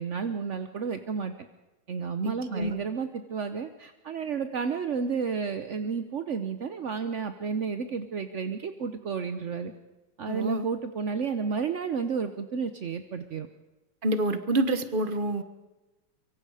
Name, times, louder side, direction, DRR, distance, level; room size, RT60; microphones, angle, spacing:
voice 1, 0.0-1.5 1.9-9.7 10.2-13.5, right 5 dB, 55° right, 8 dB, 0.8 m, -31 dB
voice 2, 2.2-2.7 10.3-10.7 14.0-15.4, right 2 dB, 30° right, 10 dB, 1.1 m, -27 dB
24.5 x 24.0 x 5.0 m, 1.1 s
omnidirectional pair, 2.4 m